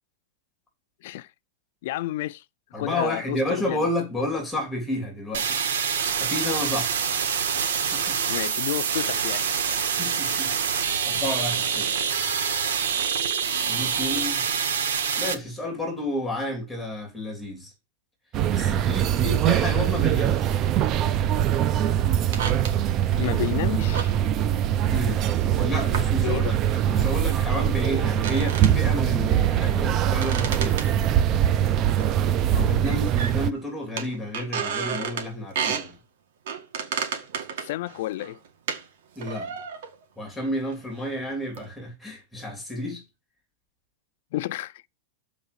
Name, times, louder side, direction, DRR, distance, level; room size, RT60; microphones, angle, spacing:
voice 1, 1.8-2.4 2.7-3.8 8.3-9.4 23.2-24.1 26.2-26.5 37.6-38.4 44.3-44.7, left 16 dB, 55° left, 0.5 m, -30 dB
voice 2, 2.7-5.6 6.2-6.9 7.7-8.2 10.0-10.5 11.1-11.9 13.7-14.4 15.2-17.7 18.5-20.5 24.9-25.3 25.5-26.4 26.7-30.9 32.5-36.0 39.1-39.5 40.2-43.0, left 1 dB, ahead, 3.4 m, -31 dB
sound 1, 5.3-15.3, right 7 dB, 85° right, 1.6 m, -26 dB
sound 2, 18.3-33.5, right 11 dB, 30° right, 0.5 m, -23 dB
sound 3, 22.3-22.7 23.9-24.1 25.9-26.1 26.7-26.9 28.1-28.8 30.0-31.4 32.0-32.1 32.4-32.5 32.8-33.6 34.0-35.3 35.6-35.9 36.5-38.8 39.2-40.0 40.7-40.9 41.5-41.7, right 7 dB, 65° right, 2.0 m, -32 dB
7.1 x 5.1 x 6.9 m
supercardioid pair, 160°, 0 cm